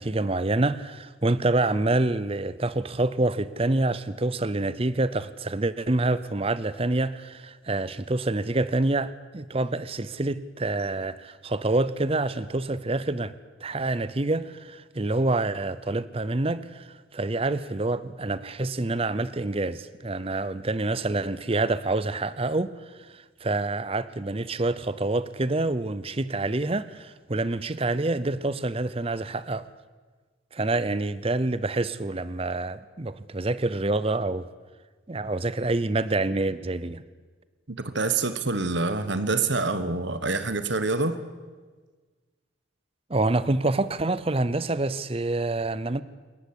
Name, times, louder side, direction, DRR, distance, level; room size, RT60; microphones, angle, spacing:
voice 1, 0.0-13.3 13.6-29.7 30.5-34.5 35.1-37.0 43.1-46.0, right 2 dB, 30° right, 16 dB, 0.7 m, -27 dB
voice 2, 37.7-41.2, right 3 dB, 55° right, 11 dB, 1.4 m, -26 dB
27.0 x 15.0 x 9.9 m, 1.4 s
head